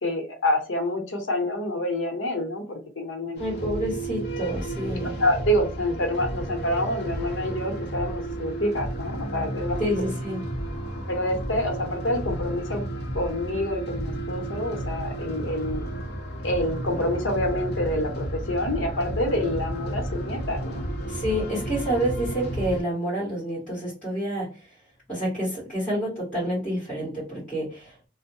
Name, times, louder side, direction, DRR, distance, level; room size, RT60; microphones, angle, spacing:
voice 1, 0.0-3.4 4.9-9.9 11.1-12.8 13.1-15.8 16.4-20.8, left 1 dB, 85° left, 4 dB, 0.9 m, -27 dB
sound 1, 3.4-22.8, right 1 dB, 55° left, 0.7 m, -32 dB
voice 2, 3.4-5.1 9.8-10.4 21.1-24.7 25.1-27.9, equal, 5° left, -12 dB, 1.5 m, -28 dB
2.6 x 2.1 x 2.7 m, 0.34 s
head